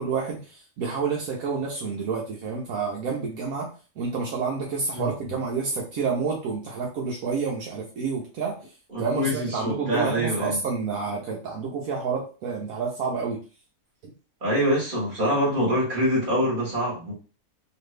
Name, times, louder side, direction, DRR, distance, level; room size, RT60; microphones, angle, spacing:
voice 1, 0.0-3.7 4.0-8.6 9.0-13.4, right 5 dB, 75° right, -1 dB, 1.1 m, -29 dB
voice 2, 8.9-10.6 14.4-17.1, equal, 35° right, -4 dB, 1.6 m, -25 dB
3.0 x 2.5 x 3.2 m, 0.35 s
omnidirectional pair, 1.6 m